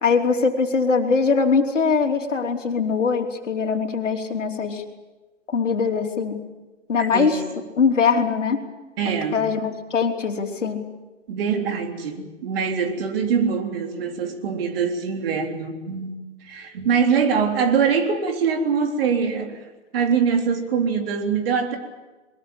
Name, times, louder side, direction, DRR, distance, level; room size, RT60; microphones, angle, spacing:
voice 1, 0.0-4.8 5.5-6.4 6.9-7.4 7.8-8.6 9.3-10.8, left 5 dB, 75° left, 4 dB, 3.3 m, -21 dB
voice 2, 7.0-7.4 9.0-9.5 11.3-16.2 16.4-19.6 19.9-21.8, right 6 dB, 50° right, 5 dB, 3.6 m, -23 dB
22.0 x 21.0 x 8.8 m, 1.2 s
hypercardioid pair, 130°, 37 cm